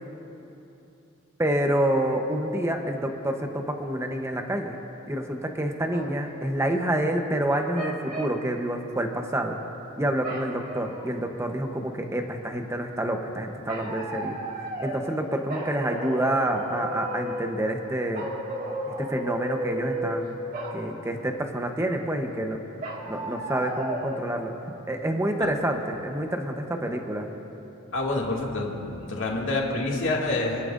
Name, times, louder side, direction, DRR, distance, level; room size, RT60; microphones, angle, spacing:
voice 1, 1.4-4.7 5.1-9.6 10.0-14.4 14.8-18.2 19.1-20.4 20.7-22.6 23.1-24.5 24.8-27.3, right 1 dB, 10° right, 3 dB, 0.8 m, -28 dB
sound 1, 5.9-6.2 7.5-8.4 10.2-11.1 13.7-15.1 15.5-17.6 18.1-20.2 20.5-20.8 22.8-24.2, right 1 dB, 40° right, 1.9 m, -33 dB
voice 2, 27.9-30.7, left 2 dB, 55° left, -2 dB, 2.2 m, -27 dB
28.0 x 11.5 x 2.6 m, 2.9 s
head